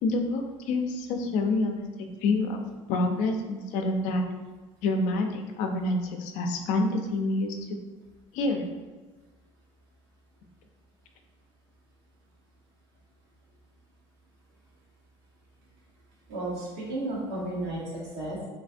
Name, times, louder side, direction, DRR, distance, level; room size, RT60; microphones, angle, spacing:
voice 1, 0.0-1.8 2.2-2.6 2.9-4.2 4.8-7.6 8.3-8.7, left 2 dB, 65° left, 4 dB, 0.5 m, -27 dB
voice 2, 16.3-18.4, right 1 dB, 85° right, -5 dB, 1.3 m, -33 dB
3.2 x 3.1 x 2.6 m, 1.3 s
supercardioid pair, 120°, 14 cm